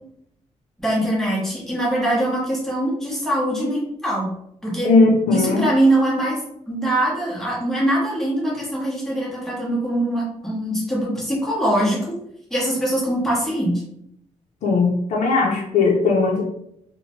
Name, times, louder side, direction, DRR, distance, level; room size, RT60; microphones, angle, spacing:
voice 1, 0.8-4.3 4.6-4.9 5.3-6.4 6.7-12.0 12.5-13.8, right 1 dB, 5° left, -6 dB, 0.9 m, -22 dB
voice 2, 4.8-5.7 14.6-16.4, left 3 dB, 65° left, -2 dB, 0.6 m, -18 dB
2.8 x 2.1 x 2.9 m, 0.75 s
wide cardioid pair, 175°, 13 cm